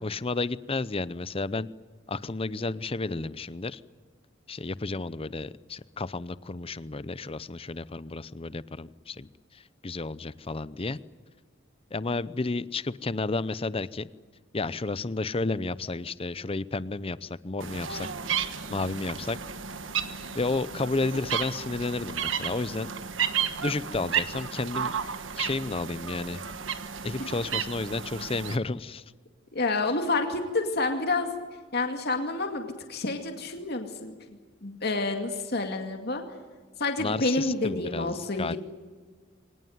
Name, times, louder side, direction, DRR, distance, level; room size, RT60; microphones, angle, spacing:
voice 1, 0.0-1.7 2.1-3.8 4.5-11.0 11.9-14.1 14.5-18.1 18.4-19.4 20.3-22.9 23.6-25.0 25.4-26.4 27.0-29.0 37.0-38.6, left 3 dB, 30° left, 17 dB, 0.7 m, -32 dB
sound 1, 17.6-28.6, right 7 dB, 75° right, 1.5 m, -33 dB
voice 2, 29.5-31.3 31.7-34.1 34.6-36.2 36.8-38.6, left 3 dB, 55° left, 5 dB, 2.3 m, -28 dB
24.5 x 19.0 x 9.4 m, 1.5 s
head